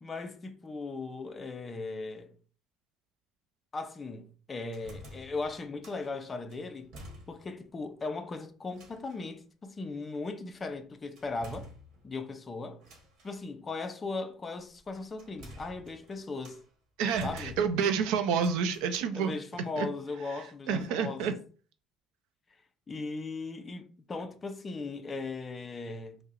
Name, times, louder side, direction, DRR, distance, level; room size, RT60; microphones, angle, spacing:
voice 1, 0.0-2.3 3.7-6.9 7.3-11.7 12.0-12.8 13.2-16.6 17.2-17.6 19.1-21.4 22.9-26.2, left 3 dB, 20° left, 0.4 m, -38 dB
sound 1, 4.6-6.1 6.5-7.6 7.9-8.0 8.7-9.3 11.2-12.3 12.8-13.4 14.5-16.7 17.1-18.0 18.3-19.0, equal, 55° right, 1.2 m, -50 dB
voice 2, 17.0-19.3 19.8-19.9 20.7-21.3, right 6 dB, 80° right, 0.4 m, -28 dB
5.3 x 2.0 x 2.5 m
cardioid pair, 140°, 0 cm